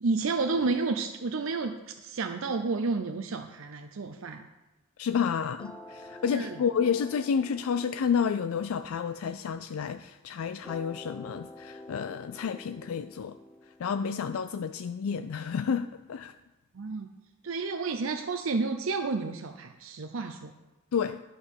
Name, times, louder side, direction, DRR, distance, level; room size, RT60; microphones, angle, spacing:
voice 1, 0.0-4.5 6.3-6.6 16.7-17.1 17.4-20.5, right 3 dB, 70° right, 5 dB, 0.6 m, -31 dB
voice 2, 5.0-13.4 13.7-16.3 20.9-21.2, left 6 dB, 90° left, 10 dB, 0.4 m, -30 dB
sound 1, 5.6-10.0 10.6-15.6, left 2 dB, 5° left, 0.5 m, -49 dB
11.5 x 5.5 x 6.4 m, 1.1 s
head